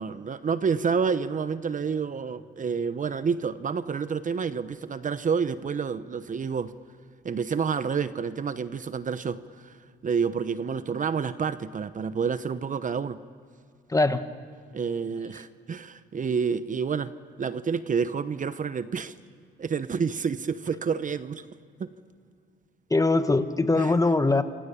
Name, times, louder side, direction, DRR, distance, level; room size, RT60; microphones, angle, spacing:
voice 1, 0.0-6.7 7.2-9.8 10.0-13.2 14.7-17.1 17.4-19.1 19.6-21.4 21.8-21.9 23.8-23.9, right 6 dB, 40° right, 13 dB, 0.9 m, -29 dB
voice 2, 13.9-14.2 22.9-24.4, left 2 dB, 15° left, 9 dB, 1.5 m, -22 dB
29.5 x 26.0 x 7.0 m, 2.3 s
cardioid pair, 90°, 20 cm